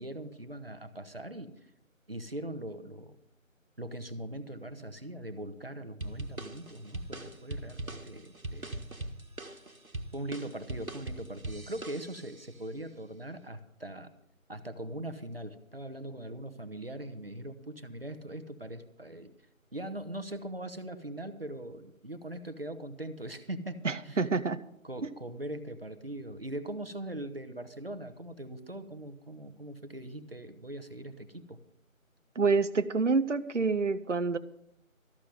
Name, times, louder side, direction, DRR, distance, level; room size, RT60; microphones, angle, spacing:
voice 1, 0.0-1.7 2.1-3.2 3.8-8.8 10.1-14.1 14.5-19.3 19.7-24.3 24.8-31.6, right 1 dB, 45° right, 9 dB, 1.1 m, -41 dB
sound 1, 6.0-12.4, right 1 dB, 85° right, 1.7 m, -41 dB
voice 2, 23.8-24.6 32.4-34.4, right 4 dB, 60° right, 12 dB, 0.7 m, -27 dB
13.5 x 6.7 x 9.1 m, 0.77 s
figure-of-eight pair, 170°, 41 cm